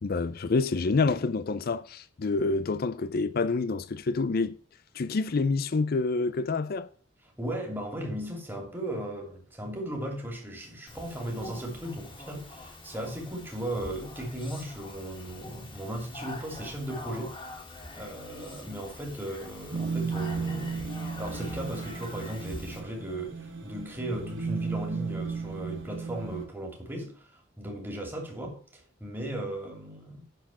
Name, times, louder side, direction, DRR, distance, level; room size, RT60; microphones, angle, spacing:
voice 1, 0.0-4.6 4.9-6.9, left 3 dB, 50° left, 0.5 m, -27 dB
voice 2, 7.4-17.3 17.9-30.2, right 1 dB, 10° right, 2.7 m, -37 dB
Speech, 10.9-22.8, left 1 dB, 25° left, 2.1 m, -44 dB
sound 1, 19.7-26.4, right 5 dB, 70° right, 1.7 m, -35 dB
11.5 x 4.5 x 7.3 m
head